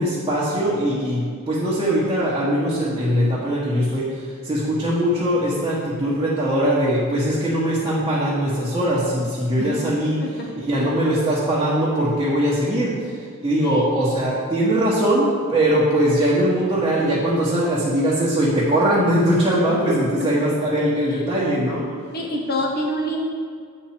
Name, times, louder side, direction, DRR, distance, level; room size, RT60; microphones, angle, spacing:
voice 1, 0.0-10.2 10.6-21.9, right 1 dB, 20° right, -9 dB, 1.3 m, -21 dB
voice 2, 22.1-23.2, equal, 45° left, 0 dB, 1.3 m, -26 dB
8.3 x 4.3 x 6.0 m, 2.1 s
head